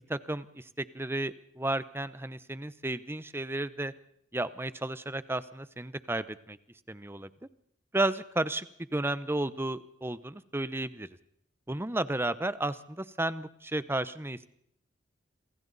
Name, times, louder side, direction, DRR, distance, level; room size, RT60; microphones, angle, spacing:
voice 1, 0.1-3.9 4.3-6.6 6.9-7.3 7.9-8.7 8.9-11.1 11.7-14.5, right 2 dB, 10° right, 14 dB, 0.8 m, -33 dB
27.5 x 26.5 x 4.1 m, 0.70 s
head